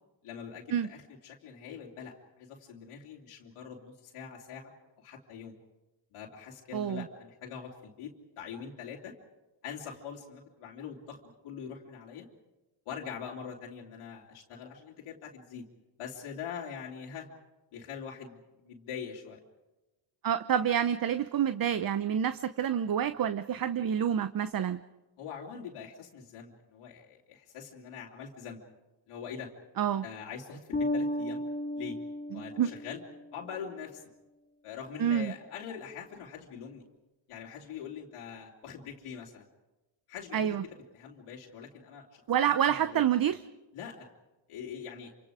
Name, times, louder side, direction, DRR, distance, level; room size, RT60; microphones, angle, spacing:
voice 1, 0.2-4.7 5.0-5.5 6.1-9.1 9.6-11.2 11.4-12.3 12.8-15.6 16.0-17.3 17.7-19.4 25.2-28.6 29.1-29.5 30.0-31.4 31.7-32.0 32.3-33.0 33.3-34.1 34.6-36.8 37.3-39.4 40.1-40.5 40.9-42.2 42.6-43.0 43.7-44.1 44.5-45.1, left 7 dB, 90° left, -2 dB, 3.2 m, -43 dB
voice 2, 6.7-7.1 20.2-24.8 29.8-30.0 32.3-32.7 35.0-35.3 40.3-40.6 42.3-43.4, right 9 dB, 45° right, 12 dB, 0.9 m, -28 dB
Bass guitar, 30.7-33.4, left 1 dB, 15° left, 1.4 m, -34 dB
27.5 x 26.0 x 5.0 m, 1.1 s
cardioid pair, 90°, 49 cm